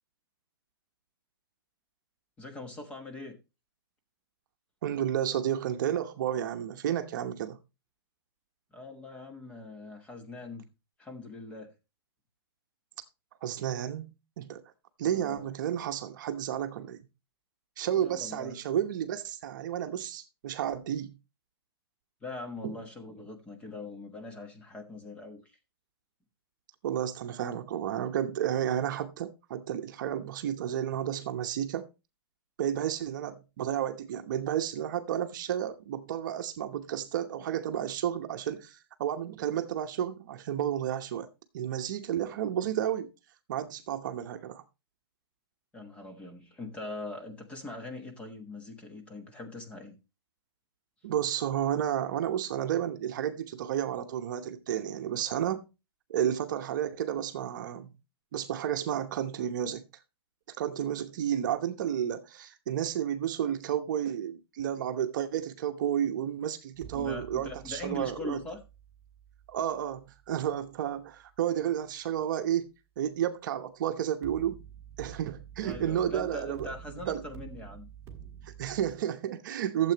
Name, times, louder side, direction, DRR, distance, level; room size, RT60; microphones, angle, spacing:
voice 1, 2.4-3.4 8.7-10.6 11.0-11.7 15.0-15.5 18.0-18.5 22.2-25.4 45.7-50.0 66.9-68.6 75.6-77.9, left 2 dB, 10° left, 1.2 m, -42 dB
voice 2, 4.8-7.6 13.4-14.1 14.4-14.6 15.0-17.0 17.8-21.1 22.6-22.7 26.8-31.9 32.6-41.3 41.5-43.1 43.5-44.6 51.0-55.7 56.1-57.9 58.3-59.8 60.5-68.4 69.5-72.7 73.0-74.6 75.0-76.7 77.0-77.2 78.4-79.9, right 10 dB, 45° right, 1.0 m, -31 dB
sound 1, 66.7-71.8 74.2-78.9, right 9 dB, 20° right, 1.6 m, -49 dB
13.0 x 7.7 x 3.0 m
hypercardioid pair, 165°, 14 cm